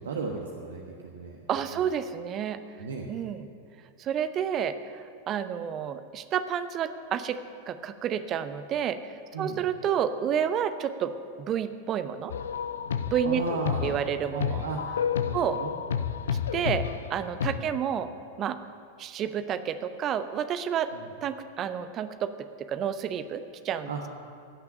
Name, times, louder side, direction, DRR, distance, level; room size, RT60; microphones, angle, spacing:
voice 1, 0.0-1.7 2.8-3.1 9.3-9.6 13.2-13.9 14.3-14.8 15.2-15.7 16.2-16.3 16.6-16.8 17.5-17.7 20.9-21.0 23.9-24.1, right 4 dB, 65° right, 1 dB, 1.2 m, -35 dB
voice 2, 1.5-2.6 3.1-3.5 4.0-7.4 7.7-9.1 9.4-11.1 11.4-12.3 13.1-13.4 13.8-14.6 15.3-15.6 16.5-16.8 17.1-18.1 18.4-18.6 19.0-20.9 21.2-23.9, right 8 dB, 30° right, 11 dB, 0.7 m, -30 dB
sound 1, 12.3-17.6, left 7 dB, 65° left, 0.5 m, -30 dB
17.0 x 6.0 x 9.7 m, 2.4 s
figure-of-eight pair, 90°, 0 cm